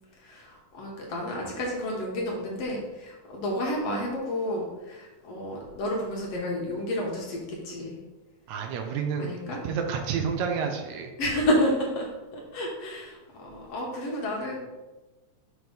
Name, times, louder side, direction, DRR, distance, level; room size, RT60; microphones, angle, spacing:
voice 1, 0.2-8.0 9.2-9.6 11.2-12.1 12.3-14.6, left 1 dB, 65° left, -2 dB, 2.0 m, -30 dB
voice 2, 8.5-9.4 9.6-11.1, right 6 dB, 80° right, 3 dB, 2.0 m, -29 dB
6.2 x 3.0 x 5.2 m, 1.1 s
omnidirectional pair, 3.4 m